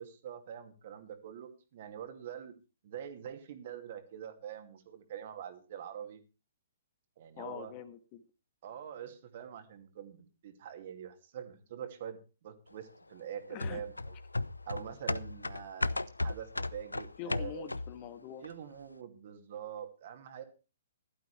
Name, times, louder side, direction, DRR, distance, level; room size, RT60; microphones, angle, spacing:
voice 1, 0.0-2.5 2.8-6.2 7.2-7.7 8.6-14.2 14.7-17.7 18.4-20.4, right 9 dB, 45° right, 7 dB, 2.5 m, -45 dB
voice 2, 7.4-8.2 13.5-13.8 17.2-18.4, left 9 dB, 30° left, 11 dB, 1.5 m, -44 dB
sound 1, 13.6-18.1 18.4-18.5, left 2 dB, 85° left, 0.6 m, -35 dB
15.5 x 12.5 x 3.3 m, 0.32 s
figure-of-eight pair, 120°, 0 cm